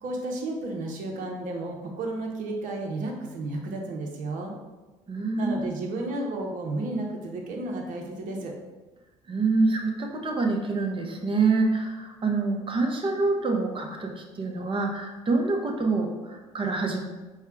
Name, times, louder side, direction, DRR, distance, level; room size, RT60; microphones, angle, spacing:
voice 1, 0.0-4.5 5.4-8.5, right 2 dB, 60° right, 1 dB, 1.0 m, -32 dB
voice 2, 5.1-5.7 9.3-17.0, right 3 dB, 35° right, 2 dB, 0.9 m, -26 dB
4.6 x 2.3 x 4.5 m, 1.2 s
hypercardioid pair, 65°, 15 cm